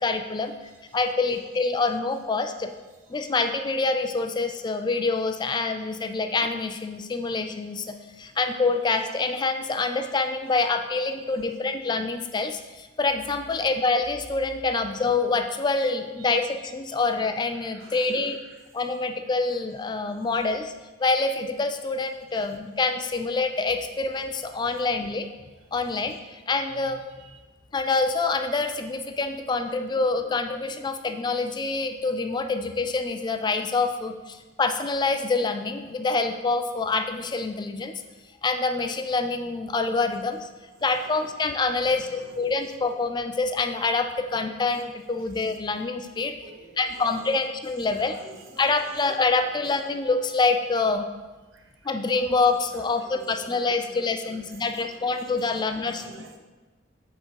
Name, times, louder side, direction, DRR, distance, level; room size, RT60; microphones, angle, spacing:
voice 1, 0.0-0.5 0.9-2.7 3.1-18.4 18.7-20.7 21.0-25.3 25.7-27.0 27.7-38.0 38.4-40.5 40.8-46.4 46.8-48.2 48.6-51.1 51.8-56.0, left 3 dB, 20° left, 7 dB, 0.4 m, -26 dB
voice 2, 17.5-18.6 27.1-27.4 41.8-42.2 46.1-47.4 47.9-49.0 51.8-51.9 52.7-55.1 55.5-56.4, right 3 dB, 90° right, 3 dB, 0.9 m, -49 dB
7.8 x 3.7 x 4.6 m, 1.2 s
head